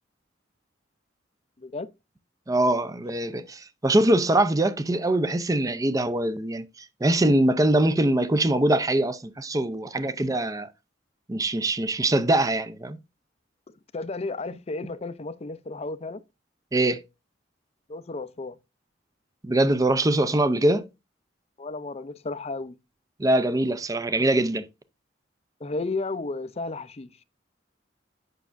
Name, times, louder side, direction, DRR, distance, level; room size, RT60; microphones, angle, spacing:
voice 1, 1.6-1.9 13.7-16.2 17.9-18.6 21.6-22.8 25.6-27.1, left 3 dB, 35° left, 0.5 m, -33 dB
voice 2, 2.5-6.6 7.0-10.7 11.3-13.0 16.7-17.0 19.4-20.9 23.2-24.6, right 1 dB, 20° right, 0.5 m, -23 dB
9.2 x 6.0 x 2.5 m
head